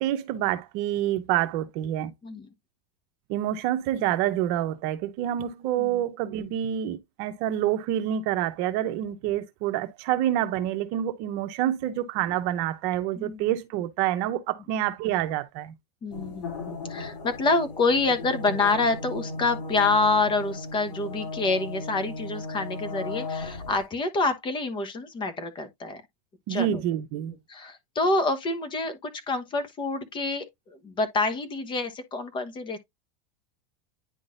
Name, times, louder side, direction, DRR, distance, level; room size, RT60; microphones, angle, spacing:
voice 1, 0.0-2.1 3.3-15.7 26.5-27.3, right 12 dB, 50° right, 0.9 m, -27 dB
voice 2, 16.0-26.0 26.5-26.8 27.3-32.8, left 3 dB, 25° left, 1.1 m, -27 dB
sound 1, 16.1-23.8, left 2 dB, 85° left, 3.0 m, -36 dB
9.9 x 3.9 x 2.5 m
supercardioid pair, 140°, 20 cm